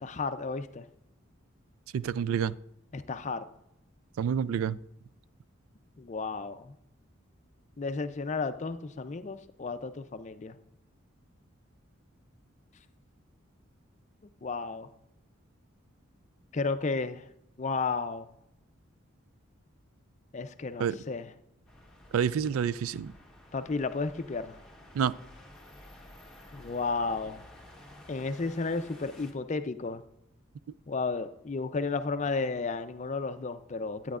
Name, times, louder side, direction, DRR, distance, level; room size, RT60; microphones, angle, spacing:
voice 1, 0.0-0.9 2.9-3.5 6.0-6.7 7.8-10.6 14.2-14.9 16.5-17.2 17.6-18.3 20.3-21.3 23.5-24.6 26.5-27.4 28.1-30.0 30.9-34.2, left 4 dB, 35° left, 11 dB, 0.4 m, -33 dB
voice 2, 1.9-2.5 4.2-4.8 20.8-21.0 22.1-23.1 25.0-25.2, right 7 dB, 85° right, 18 dB, 0.3 m, -28 dB
sound 1, 21.7-29.3, left 1 dB, 5° left, 1.1 m, -53 dB
11.5 x 8.9 x 2.4 m, 0.79 s
head